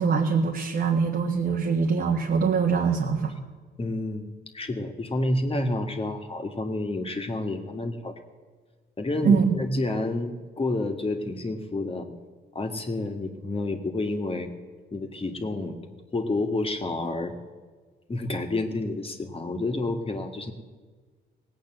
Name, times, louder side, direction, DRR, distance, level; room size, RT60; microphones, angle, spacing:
voice 1, 0.0-3.3 9.2-9.5, right 5 dB, 55° right, 0 dB, 1.6 m, -23 dB
voice 2, 3.8-8.1 9.0-12.1 12.6-14.5 14.9-15.8 16.1-17.3 18.1-20.5, left 2 dB, 30° left, 4 dB, 1.8 m, -29 dB
18.0 x 8.6 x 7.7 m, 1.4 s
cardioid pair, 90°, 20 cm